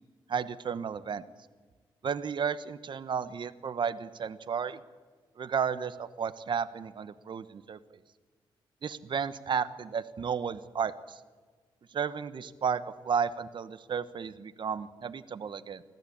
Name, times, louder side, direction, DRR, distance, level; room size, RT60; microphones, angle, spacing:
voice 1, 0.3-1.2 2.0-4.8 5.4-7.8 8.8-11.2 11.9-15.8, right 6 dB, 55° right, 14 dB, 1.2 m, -33 dB
25.5 x 15.0 x 8.7 m, 1.4 s
cardioid pair, 80°, 10 cm